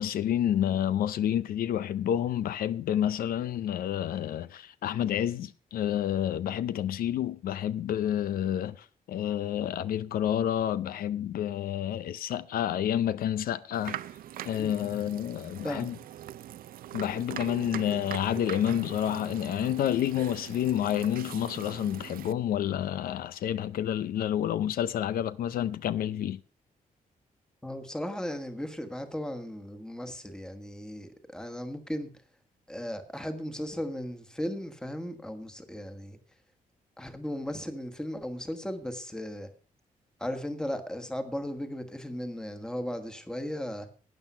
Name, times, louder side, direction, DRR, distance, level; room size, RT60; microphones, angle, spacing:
voice 1, 0.0-14.0 14.4-15.9 16.9-26.4, left 10 dB, 80° left, 0.5 m, -29 dB
sound 1, 13.7-22.3, right 12 dB, 80° right, 0.5 m, -42 dB
voice 2, 15.6-16.0 27.6-32.1 32.7-36.2 37.0-39.5 40.2-43.9, equal, 5° left, 1.4 m, -36 dB
12.0 x 9.0 x 5.5 m
wide cardioid pair, 155°, 15 cm